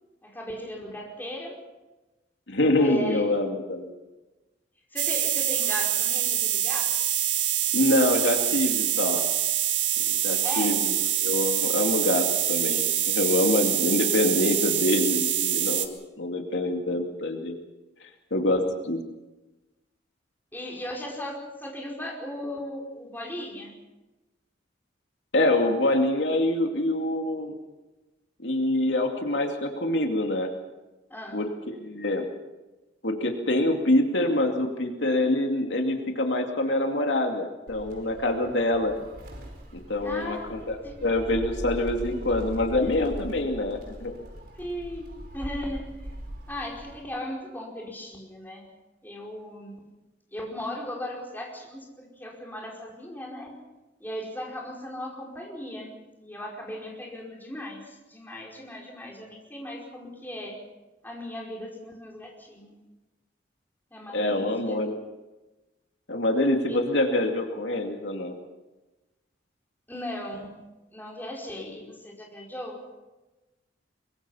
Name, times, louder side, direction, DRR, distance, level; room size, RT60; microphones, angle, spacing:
voice 1, 0.2-1.6 2.8-3.3 4.9-7.1 10.4-10.8 20.5-23.8 31.1-31.4 40.0-41.0 44.5-46.1 46.5-48.7 49.0-49.9 50.3-53.6 54.0-60.6 61.0-62.8 63.9-64.8 66.7-66.8 69.9-70.6 70.9-72.8, left 1 dB, 10° left, -2 dB, 4.9 m, -37 dB
voice 2, 2.5-3.9 7.7-9.2 10.0-10.9 11.2-17.6 18.3-19.0 25.3-27.5 28.4-30.5 31.3-32.3 33.0-38.9 39.7-40.7 41.0-44.1 64.1-64.9 66.1-68.3, left 1 dB, 80° left, 3 dB, 2.4 m, -25 dB
sound 1, 5.0-15.9, right 11 dB, 90° right, 1.7 m, -25 dB
Gull seagull, 37.7-47.0, equal, 55° right, 4.8 m, -40 dB
23.5 x 23.0 x 5.7 m, 1.1 s
head